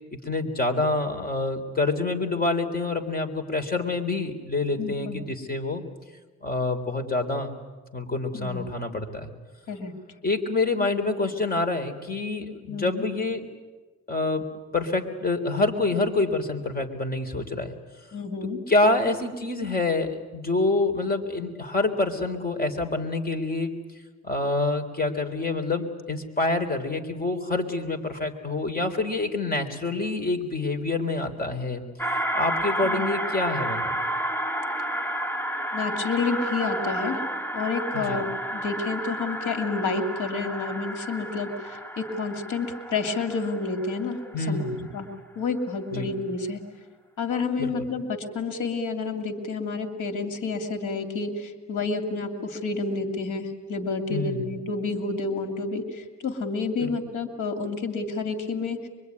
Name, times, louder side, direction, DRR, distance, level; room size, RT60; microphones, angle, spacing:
voice 1, 0.1-5.8 6.4-7.5 7.9-9.3 10.2-13.5 14.1-14.5 14.7-17.7 18.4-23.7 24.2-31.8 32.3-34.0 37.9-38.2 44.3-45.0 45.9-46.1 47.6-47.9 54.1-54.5 56.8-56.9, left 2 dB, 30° left, 6 dB, 3.7 m, -27 dB
voice 2, 4.8-5.3 8.3-8.7 9.7-9.9 12.7-13.0 18.1-18.6 32.8-33.2 35.7-37.2 37.5-38.3 38.5-44.2 44.5-45.1 45.4-46.6 47.2-58.8, left 4 dB, 80° left, 6 dB, 2.7 m, -29 dB
sound 1, 32.0-44.7, right 1 dB, 5° left, 1.3 m, -31 dB
24.0 x 23.5 x 9.6 m, 1.3 s
cardioid pair, 90°, 30 cm